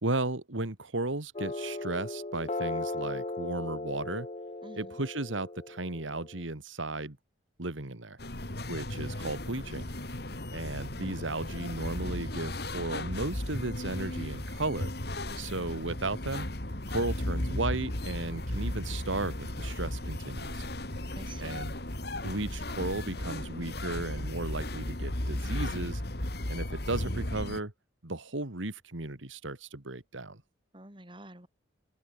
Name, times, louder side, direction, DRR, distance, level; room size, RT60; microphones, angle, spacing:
voice 1, 0.0-4.3 4.8-7.2 7.6-8.2 8.7-9.9 10.5-14.9 15.4-16.5 16.9-20.7 21.4-21.7 22.2-26.0 26.5-27.7 28.0-30.4, right 2 dB, 85° right, 2.2 m, -35 dB
sound 1, 1.3-6.4, left 2 dB, 35° left, 1.0 m, -37 dB
voice 2, 4.6-5.0 9.1-9.3 21.1-21.7 30.7-31.5, right 1 dB, 25° right, 3.7 m, -50 dB
sound 2, 8.2-27.6, left 1 dB, 55° left, 3.0 m, -35 dB
open air
head